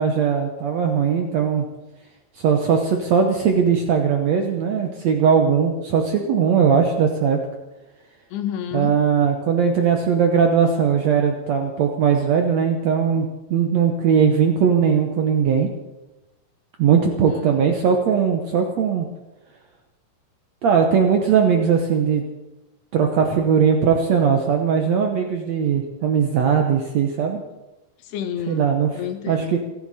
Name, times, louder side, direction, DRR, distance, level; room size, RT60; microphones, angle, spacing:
voice 1, 0.0-1.6 2.4-7.4 8.7-15.7 16.8-19.1 20.6-22.2 22.9-27.4 28.5-28.9 29.3-29.6, right 7 dB, 75° right, 4 dB, 1.5 m, -19 dB
voice 2, 8.3-9.0 17.1-17.6 28.0-28.7 29.0-29.6, left 8 dB, 80° left, 8 dB, 3.3 m, -30 dB
28.5 x 11.0 x 4.2 m, 1.0 s
omnidirectional pair, 4.7 m